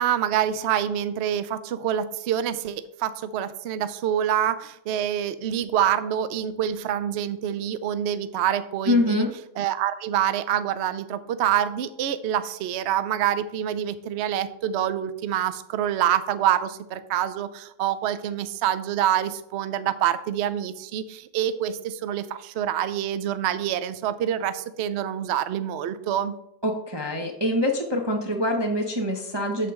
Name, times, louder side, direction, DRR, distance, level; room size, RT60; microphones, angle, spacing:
voice 1, 0.0-9.3 9.6-26.4, right 10 dB, 80° right, 13 dB, 0.6 m, -26 dB
voice 2, 8.9-9.3 26.6-29.7, left 1 dB, 20° right, 1 dB, 0.7 m, -24 dB
8.2 x 7.5 x 3.6 m, 0.78 s
omnidirectional pair, 1.8 m